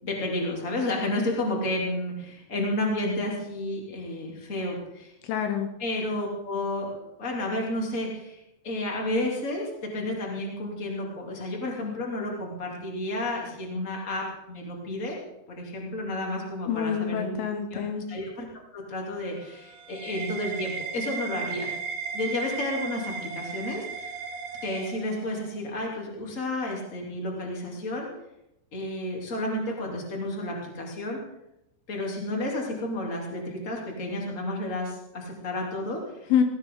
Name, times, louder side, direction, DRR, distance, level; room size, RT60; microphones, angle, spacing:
voice 1, 0.0-5.1 5.8-15.2 15.5-17.4 17.7-17.8 18.1-18.5 18.7-21.7 22.1-24.1 24.6-28.1 28.7-31.2 31.9-36.3, left 1 dB, 20° left, -1 dB, 2.8 m, -31 dB
voice 2, 5.3-5.7 16.7-18.0 36.3-36.4, left 8 dB, 75° left, 6 dB, 3.5 m, -26 dB
sound 1, 19.2-25.6, right 5 dB, 65° right, 3.7 m, -36 dB
19.5 x 16.0 x 4.0 m, 0.86 s
omnidirectional pair, 5.9 m